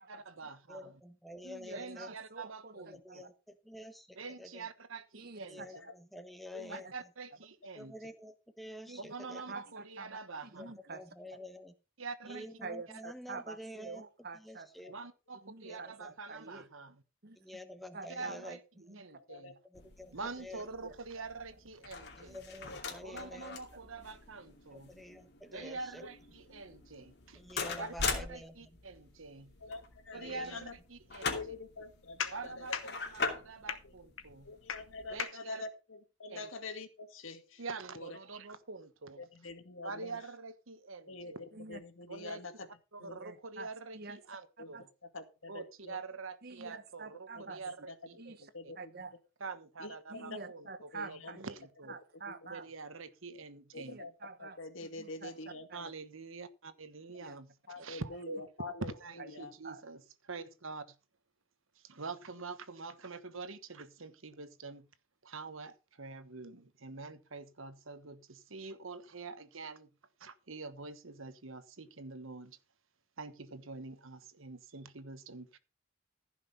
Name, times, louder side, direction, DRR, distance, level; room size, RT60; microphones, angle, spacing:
voice 1, 0.1-1.0 1.7-3.2 4.2-5.6 6.7-7.9 9.0-10.6 12.0-12.5 14.9-17.0 18.1-18.6 19.0-19.6 20.1-22.4 23.0-24.9 25.5-27.4 27.8-29.5 30.1-31.4 32.3-32.7 33.3-34.5 35.1-35.6 36.3-36.5 37.6-39.2 39.8-41.5 42.1-44.9 45.5-48.7 49.4-51.2 51.4-52.0 52.5-54.0 55.7-58.4 58.8-60.9 61.7-64.9 65.2-69.9 70.2-72.6 73.2-75.6, right 4 dB, 80° right, 1.3 m, -45 dB
voice 2, 0.7-2.1 2.7-4.6 5.5-6.9 7.7-9.6 10.5-11.7 12.3-14.0 14.3-14.9 15.6-16.1 17.4-18.6 18.9-19.0 19.7-20.7 22.2-23.6 24.7-26.0 27.3-28.7 30.1-30.6 31.3-31.6, left 1 dB, ahead, 1.2 m, -49 dB
voice 3, 1.4-3.3 5.1-5.7 6.6-6.9 8.9-9.0 9.5-10.2 10.5-11.0 12.2-14.7 15.4-16.7 17.2-17.4 17.9-19.0 20.8-20.9 41.5-41.8 43.0-44.2 44.7-44.8 46.4-47.6 48.2-49.1 50.1-51.5 51.9-52.7 53.7-55.4 55.7-55.9 57.2-57.4 59.2-59.4 59.6-59.8, right 3 dB, 50° right, 1.1 m, -47 dB
sound 1, 19.7-35.2, left 5 dB, 50° left, 2.7 m, -42 dB
voice 4, 29.6-30.7 31.2-32.9 34.4-37.6 37.9-38.1 39.2-40.2 41.1-42.7 43.0-43.2 44.6-44.7 45.0-46.0 48.5-48.7 49.8-50.4 50.9-51.4 52.4-52.5 53.7-54.1 54.4-55.7 57.7-58.9 59.3-59.5, left 4 dB, 75° left, 2.2 m, -44 dB
15.5 x 6.0 x 5.6 m
head